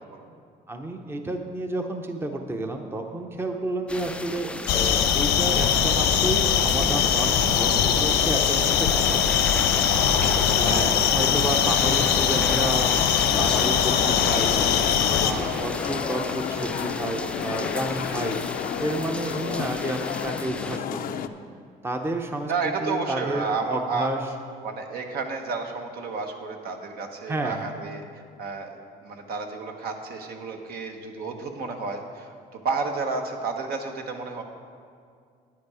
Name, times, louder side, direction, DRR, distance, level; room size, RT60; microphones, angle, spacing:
voice 1, 0.7-9.5 10.1-14.5 15.0-18.4 18.8-21.2 21.8-22.5 22.8-24.2 27.3-27.7, right 2 dB, 15° right, 4 dB, 0.7 m, -31 dB
sound 1, 3.9-20.8, left 2 dB, 5° left, 0.4 m, -35 dB
sound 2, 4.7-15.3, left 8 dB, 85° left, 0.9 m, -21 dB
voice 2, 10.7-11.3 18.1-18.2 19.5-19.6 22.5-24.1 24.6-28.0 28.4-28.7 29.0-34.4, right 4 dB, 65° right, 4 dB, 1.2 m, -31 dB
sound 3, 13.3-21.3, left 9 dB, 60° left, 0.5 m, -31 dB
10.0 x 9.5 x 4.9 m, 2.2 s
cardioid pair, 110°, 17 cm